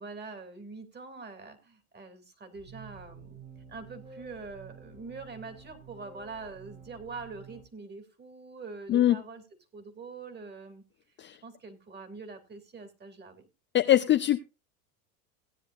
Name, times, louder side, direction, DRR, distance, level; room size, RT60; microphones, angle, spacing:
voice 1, 0.0-3.4 3.7-9.4 9.7-10.8 11.4-13.5, right 4 dB, 20° right, 2.7 m, -44 dB
sound 1, 2.5-7.6, right 5 dB, 90° right, 5.4 m, -50 dB
voice 2, 13.7-14.4, left 12 dB, 25° left, 0.6 m, -22 dB
17.5 x 9.7 x 2.5 m
hypercardioid pair, 90°, 45 cm